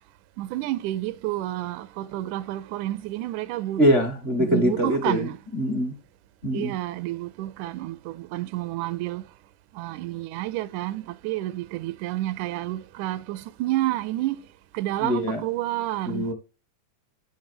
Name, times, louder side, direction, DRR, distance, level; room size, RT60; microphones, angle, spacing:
voice 1, 0.4-3.8 4.4-5.4 6.5-9.3 9.7-14.4 14.7-16.3, right 15 dB, 80° right, 2.0 m, -30 dB
voice 2, 3.8-6.0 6.4-6.7 15.0-15.4 16.1-16.3, equal, 40° right, 0.8 m, -23 dB
11.0 x 3.9 x 6.8 m
omnidirectional pair, 3.6 m